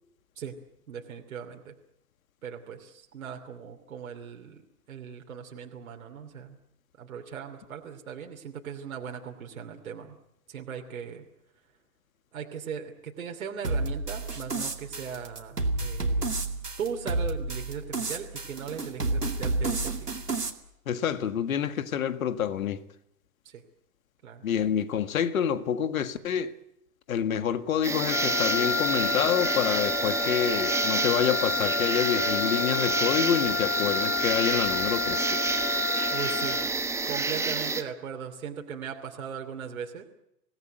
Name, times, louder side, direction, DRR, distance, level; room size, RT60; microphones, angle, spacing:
voice 1, 0.9-1.7 2.4-4.6 4.9-6.6 7.0-10.2 10.5-11.2 12.3-16.3 16.8-20.1 23.4-23.6 24.2-24.4 36.1-36.6 37.0-40.0, right 7 dB, 65° right, 3.0 m, -38 dB
sound 1, 13.6-20.5, right 2 dB, 85° right, 2.5 m, -31 dB
voice 2, 20.9-22.8 24.4-26.5 27.1-35.4, left 8 dB, 60° left, 1.8 m, -27 dB
sound 2, 27.8-37.8, right 4 dB, 5° right, 1.2 m, -29 dB
Wind instrument woodwind instrument, 28.1-36.8, left 8 dB, 25° left, 1.3 m, -31 dB
26.0 x 18.0 x 9.2 m
figure-of-eight pair, 105°, 46 cm